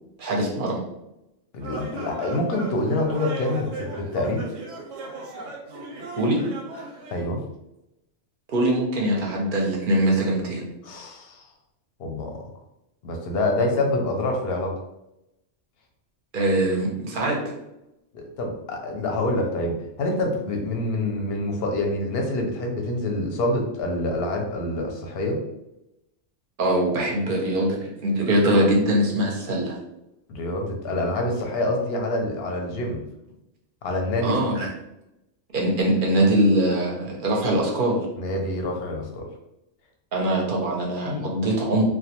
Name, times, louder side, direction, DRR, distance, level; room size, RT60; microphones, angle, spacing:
voice 1, 0.2-0.8 6.2-6.4 8.5-10.7 16.3-17.4 26.6-29.8 34.2-34.7 35.5-38.0 40.1-41.8, right 1 dB, 55° right, -2 dB, 0.6 m, -22 dB
voice 2, 1.5-4.4 7.1-7.4 10.8-11.5 12.0-12.4 13.0-14.7 18.1-25.4 30.3-33.0 33.8-34.4 38.2-39.3 41.1-41.3, left 1 dB, 65° left, 2 dB, 0.7 m, -26 dB
sound 1, 1.6-7.3, right 3 dB, 90° right, 1.0 m, -37 dB
2.2 x 2.2 x 2.8 m, 0.89 s
omnidirectional pair, 1.3 m